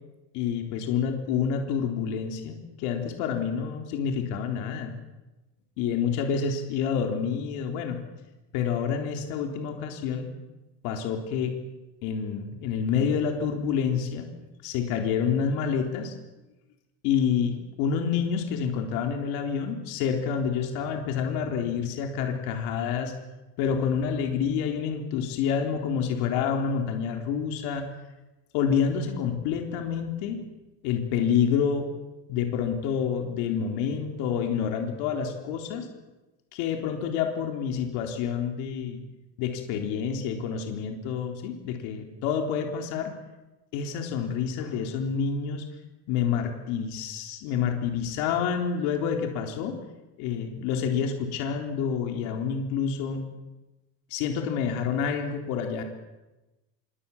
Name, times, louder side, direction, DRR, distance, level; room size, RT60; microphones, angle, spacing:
voice 1, 0.3-5.0 5.8-8.0 8.5-10.3 10.8-11.6 12.0-14.3 14.6-16.1 17.0-23.1 23.6-27.9 28.5-30.4 30.8-31.9 32.3-35.9 36.5-39.0 39.4-43.1 43.7-45.6 46.1-49.8 50.2-53.2 54.1-55.8, left 7 dB, 80° left, 3 dB, 3.9 m, -28 dB
27.0 x 23.0 x 7.3 m, 1.1 s
cardioid pair, 150°, 35 cm